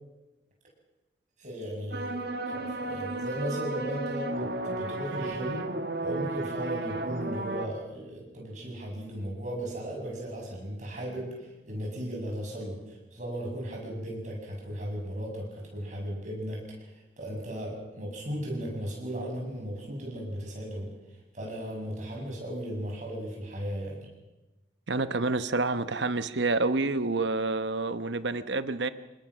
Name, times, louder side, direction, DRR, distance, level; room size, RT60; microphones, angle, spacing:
voice 1, 1.4-5.7 6.0-16.9 17.2-20.9 21.3-24.1, equal, 40° right, -1 dB, 7.4 m, -36 dB
sound 1, 1.9-7.7, right 2 dB, 55° right, 1.6 m, -34 dB
voice 2, 24.9-28.9, right 3 dB, 75° right, 12 dB, 1.0 m, -28 dB
27.0 x 20.0 x 6.4 m, 1.0 s
head